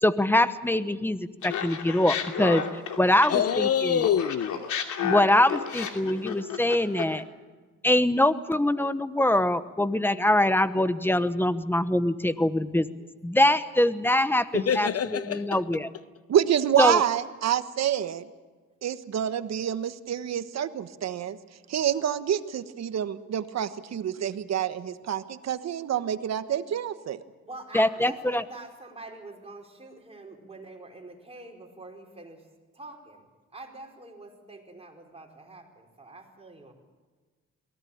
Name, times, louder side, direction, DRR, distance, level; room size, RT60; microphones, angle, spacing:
voice 1, 0.0-2.6 3.0-4.0 5.0-7.2 7.8-12.9 13.2-15.9 16.8-17.0 27.7-28.4, left 1 dB, 5° left, 1.0 m, -23 dB
Laughter, 1.4-3.7 4.0-7.2, left 8 dB, 75° left, 2.8 m, -32 dB
voice 2, 3.3-4.6 14.5-15.6, left 9 dB, 50° left, 0.8 m, -26 dB
voice 3, 16.3-18.3 18.8-21.4 21.7-27.2, right 9 dB, 60° right, 1.3 m, -27 dB
voice 4, 27.4-32.5 32.7-36.7, right 2 dB, 20° right, 4.9 m, -45 dB
23.0 x 17.0 x 8.7 m
cardioid pair, 90°, 30 cm